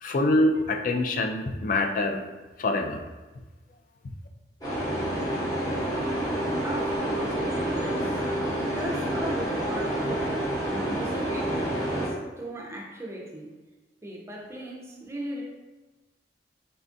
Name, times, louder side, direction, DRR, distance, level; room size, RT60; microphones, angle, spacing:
voice 1, 0.0-2.2 2.6-3.0, left 2 dB, 45° left, 5 dB, 0.3 m, -25 dB
sound 1, 4.6-12.1, right 1 dB, 20° left, 0.9 m, -28 dB
voice 2, 6.6-10.4 10.7-13.5 14.0-15.4, right 1 dB, 15° right, -2 dB, 0.5 m, -37 dB
4.1 x 2.3 x 2.6 m, 1.2 s
head